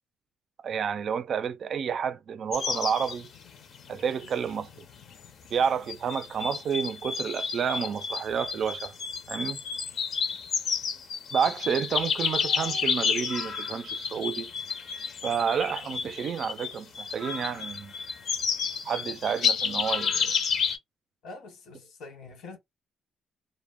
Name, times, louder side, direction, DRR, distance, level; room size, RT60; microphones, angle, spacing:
voice 1, 0.6-3.3 3.9-4.7 5.5-8.9 9.3-9.6 11.3-14.5 15.2-17.9 18.8-20.3, right 7 dB, 60° right, 0.3 m, -30 dB
sound 1, 2.5-20.8, left 6 dB, 65° left, 0.6 m, -31 dB
voice 2, 21.2-22.6, left 3 dB, 90° left, 1.1 m, -44 dB
2.1 x 2.0 x 3.4 m
cardioid pair, 90°, 0 cm